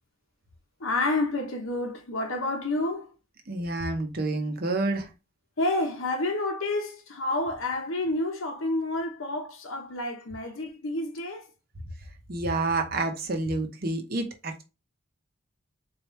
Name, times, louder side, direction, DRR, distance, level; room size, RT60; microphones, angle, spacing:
voice 1, 0.8-3.1 5.6-11.5, left 2 dB, 70° left, 0.9 m, -29 dB
voice 2, 3.5-5.1 12.3-14.6, right 2 dB, 45° right, 0.8 m, -29 dB
4.1 x 3.2 x 3.1 m
head